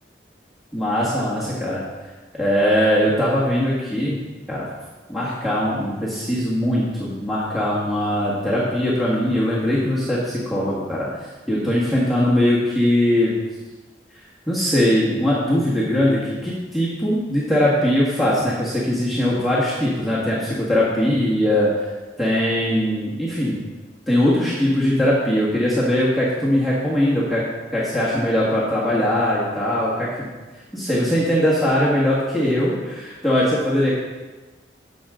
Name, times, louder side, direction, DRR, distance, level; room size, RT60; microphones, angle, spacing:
voice 1, 0.7-1.8 2.3-4.2 4.5-4.6 5.1-13.3 14.5-21.7 22.2-23.6 24.1-27.4 27.7-30.3 30.7-34.0, left 1 dB, ahead, -8 dB, 1.6 m, -21 dB
14.5 x 6.3 x 3.7 m, 1.3 s
head